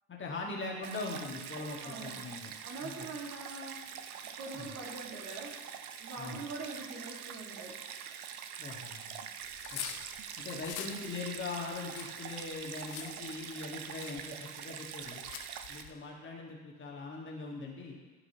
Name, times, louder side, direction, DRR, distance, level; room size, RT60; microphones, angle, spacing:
voice 1, 0.1-2.5 2.8-3.1 4.5-4.7 6.2-6.4 8.6-9.2 9.7-9.8 10.4-15.2 15.7-18.0, left 3 dB, 25° left, -2 dB, 1.6 m, -41 dB
Stream, 0.8-15.8, right 8 dB, 80° right, 0.6 m, -44 dB
voice 2, 1.8-2.2 2.6-3.8 4.4-5.6 6.0-7.8, right 3 dB, 35° right, -1 dB, 1.8 m, -43 dB
sound 1, 9.4-10.9 11.4-13.1 13.7-13.8 14.0-14.2 15.0-15.9, left 10 dB, 45° left, 0.7 m, -43 dB
13.5 x 4.8 x 2.9 m, 1.4 s
figure-of-eight pair, 65°, 43 cm